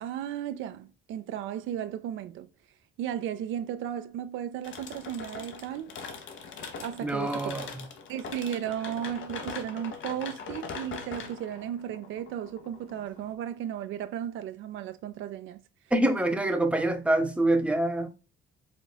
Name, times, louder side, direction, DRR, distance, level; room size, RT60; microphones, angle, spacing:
voice 1, 0.0-2.5 3.0-5.9 6.8-7.7 8.1-15.6, right 10 dB, 80° right, 0.4 m, -35 dB
sound 1, 4.6-13.3, left 5 dB, 75° left, 0.9 m, -41 dB
voice 2, 7.0-7.7 15.9-18.1, right 1 dB, 5° right, 0.6 m, -25 dB
5.1 x 3.6 x 2.2 m
cardioid pair, 90°, 20 cm